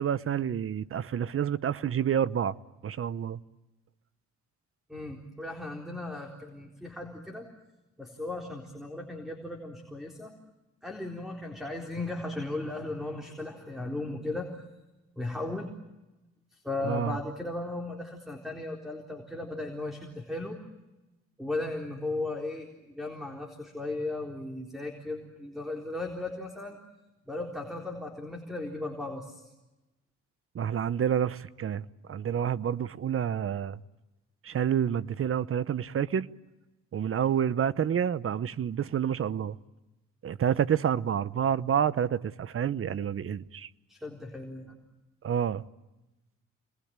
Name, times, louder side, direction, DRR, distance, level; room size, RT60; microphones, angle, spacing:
voice 1, 0.0-2.5 2.8-3.4 16.8-17.2 30.5-33.8 34.4-36.3 36.9-39.6 40.2-43.7 45.2-45.6, right 8 dB, 45° right, 0.9 m, -28 dB
voice 2, 4.9-7.5 8.0-10.3 10.8-14.5 15.2-15.7 16.5-20.6 21.4-26.8 27.3-29.5 43.9-44.8, left 2 dB, ahead, 4.0 m, -36 dB
27.5 x 21.5 x 8.8 m
cardioid pair, 90°, 30 cm